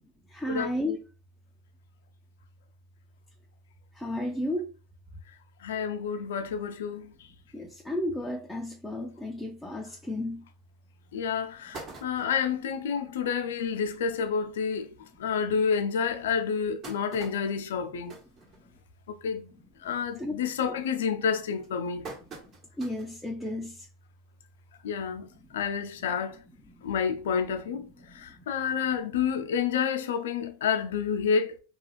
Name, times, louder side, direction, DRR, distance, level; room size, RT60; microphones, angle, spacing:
voice 1, 0.3-1.0 4.0-4.7 7.5-10.4 20.2-20.3 22.8-23.9, left 1 dB, 5° left, 0.4 m, -32 dB
voice 2, 5.6-7.1 11.1-14.9 15.2-18.2 19.1-19.5 19.8-22.1 24.8-25.3 25.5-26.4 26.8-31.6, left 6 dB, 80° left, 0.4 m, -29 dB
sound 1, 10.6-10.7 11.2-11.3 11.5-12.6 13.1-13.2 13.5-13.6 13.9-14.1 14.8-14.9 15.4-15.5 16.3-19.1 19.5-19.8 20.2-20.6 21.2-23.2 23.6-23.7 24.9-25.0, right 3 dB, 40° right, 1.1 m, -46 dB
2.3 x 2.3 x 3.1 m
hypercardioid pair, 95°, 0 cm